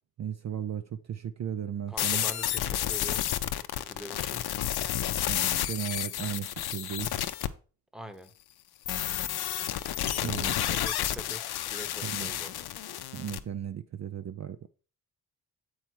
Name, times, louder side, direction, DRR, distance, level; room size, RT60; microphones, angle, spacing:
voice 1, 0.2-2.3 5.3-7.1 10.2-10.7 12.0-12.4 13.1-14.7, right 9 dB, 45° right, 0.5 m, -36 dB
voice 2, 1.9-3.2 3.7-4.4 7.9-8.3 10.1-12.7, equal, ahead, 1.0 m, -44 dB
sound 1, 2.0-7.5 8.9-13.4, left 12 dB, 75° left, 0.6 m, -31 dB
7.4 x 4.7 x 4.6 m
cardioid pair, 70°, 38 cm